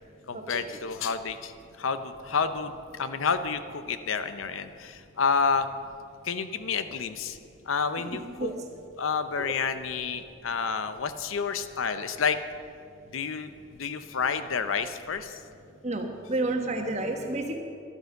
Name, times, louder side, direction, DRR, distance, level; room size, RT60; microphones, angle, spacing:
voice 1, 0.3-1.5 1.8-5.7 6.2-7.4 7.7-8.5 9.0-12.4 13.1-13.5 13.8-15.4, left 5 dB, 80° left, 11 dB, 0.7 m, -29 dB
voice 2, 15.8-17.6, right 2 dB, 35° right, 3 dB, 1.3 m, -30 dB
12.0 x 9.6 x 6.6 m, 2.5 s
head